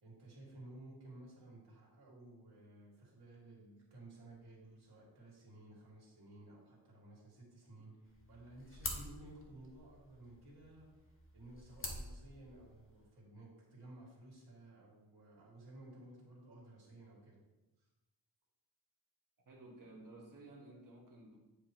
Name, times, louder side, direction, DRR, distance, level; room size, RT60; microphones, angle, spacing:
voice 1, 0.0-10.9 11.3-17.4, right 1 dB, 85° right, -4 dB, 2.4 m, -56 dB
sound 1, 8.0-13.1, left 2 dB, 35° left, 1.0 m, -48 dB
voice 2, 19.4-21.4, right 2 dB, 55° right, -1 dB, 1.6 m, -55 dB
8.7 x 5.0 x 3.1 m, 1.1 s
wide cardioid pair, 125°, 38 cm